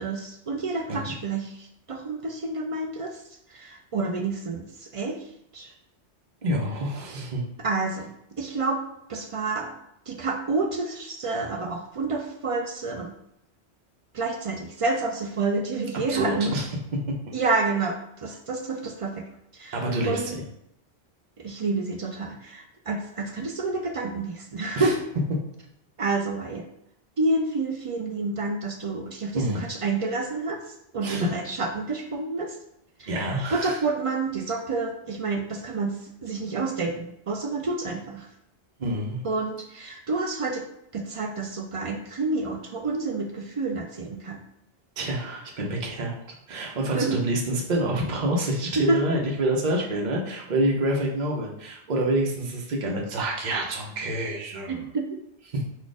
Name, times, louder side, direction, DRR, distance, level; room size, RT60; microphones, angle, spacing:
voice 1, 0.0-3.2 3.5-5.2 5.5-5.7 7.6-8.8 9.1-9.7 10.1-13.1 14.1-16.5 17.3-19.8 20.1-20.4 21.4-25.0 26.0-26.7 27.2-30.6 30.9-32.6 33.0-38.3 39.2-40.7 40.9-44.4 46.9-47.2 48.8-49.0 54.7-55.2, right 3 dB, 60° right, 3 dB, 0.3 m, -29 dB
voice 2, 6.4-7.5 16.1-16.7 19.7-20.4 24.8-24.9 29.3-29.6 31.0-31.3 33.1-33.8 38.8-39.2 45.0-46.2 46.5-54.8 55.5-55.6, right 1 dB, 45° right, -1 dB, 0.8 m, -27 dB
4.2 x 2.4 x 4.8 m, 0.76 s
omnidirectional pair, 1.1 m